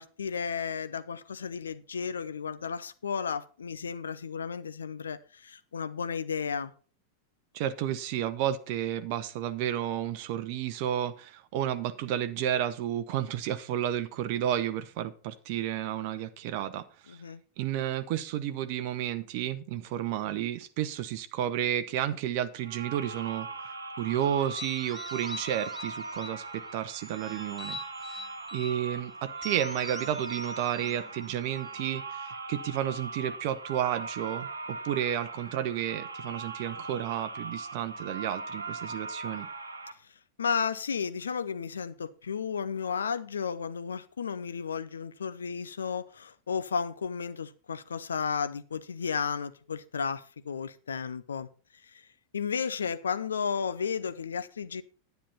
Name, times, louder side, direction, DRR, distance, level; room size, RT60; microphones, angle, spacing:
voice 1, 0.0-6.7 17.1-17.4 40.4-51.5 51.8-52.1 52.3-54.8, left 6 dB, 70° left, 0.6 m, -33 dB
voice 2, 7.5-17.2 17.6-27.8 28.1-28.2 28.5-39.5, right 11 dB, 45° right, 0.7 m, -32 dB
sound 1, 22.6-39.9, right 3 dB, 75° right, 0.9 m, -40 dB
sound 2, 24.4-26.5 26.9-28.8 29.4-31.9, left 2 dB, ahead, 1.3 m, -45 dB
10.0 x 9.2 x 4.2 m
figure-of-eight pair, 90°, 0 cm